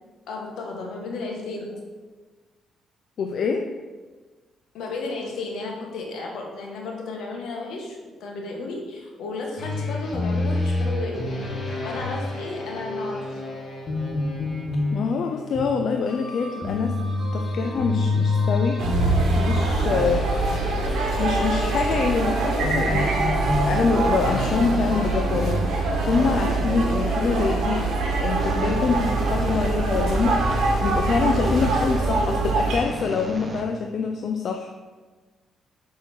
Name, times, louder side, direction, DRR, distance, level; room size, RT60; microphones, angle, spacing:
voice 1, 0.3-1.9 4.7-11.5 11.7-13.4, left 3 dB, 80° left, 0 dB, 1.5 m, -33 dB
voice 2, 3.2-3.7 14.9-17.0 17.3-18.8 19.3-20.3 21.0-23.1 23.7-27.8 28.2-34.7, left 5 dB, 60° left, 4 dB, 0.5 m, -25 dB
sound 1, 9.6-25.5, left 2 dB, 35° left, 2.0 m, -28 dB
sound 2, 18.8-32.8, right 3 dB, 75° right, 1.5 m, -24 dB
sound 3, 23.4-24.7 26.1-26.7 28.4-32.0 32.8-34.2, right 1 dB, 25° right, 1.1 m, -34 dB
6.1 x 5.6 x 4.4 m, 1.4 s
cardioid pair, 90°, 0 cm